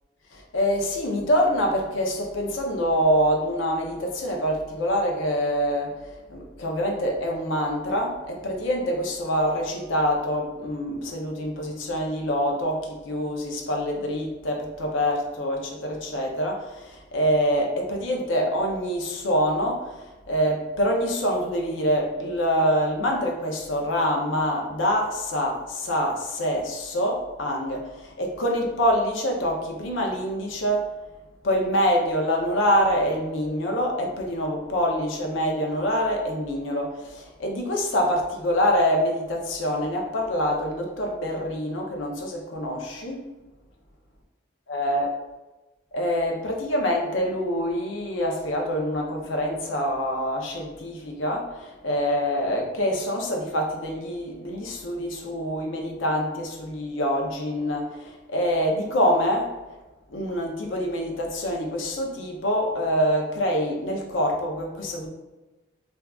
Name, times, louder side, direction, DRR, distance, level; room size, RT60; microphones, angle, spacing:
voice 1, 0.3-6.0 6.3-30.9 31.4-43.2 44.7-45.1 45.9-59.6 60.1-65.1, equal, 80° left, 1 dB, 0.6 m, -25 dB
3.5 x 2.4 x 2.3 m, 1.1 s
head